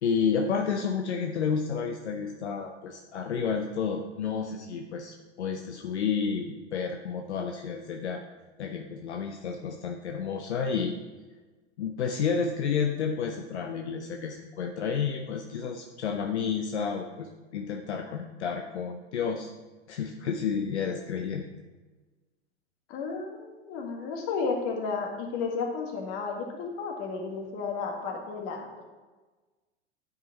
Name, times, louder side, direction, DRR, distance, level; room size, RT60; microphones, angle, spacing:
voice 1, 0.0-8.2 8.6-10.9 11.8-19.5 19.9-21.5, left 6 dB, 75° left, 3 dB, 0.8 m, -31 dB
voice 2, 22.9-28.8, left 4 dB, 45° left, 1 dB, 1.8 m, -33 dB
9.4 x 5.3 x 4.1 m, 1.3 s
figure-of-eight pair, 95°, 34 cm